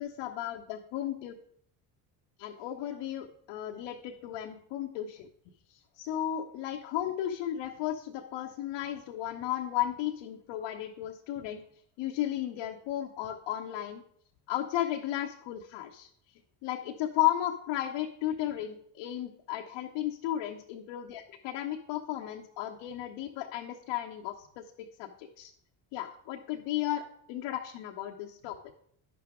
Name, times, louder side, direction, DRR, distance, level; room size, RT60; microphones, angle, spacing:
voice 1, 0.0-1.3 2.4-5.3 5.7-11.6 12.0-14.0 14.5-16.1 16.6-21.0 21.4-24.6 25.0-25.5 25.9-28.6, left 12 dB, 70° left, 3 dB, 0.9 m, -34 dB
10.0 x 6.0 x 3.6 m, 0.67 s
hypercardioid pair, 65°, 48 cm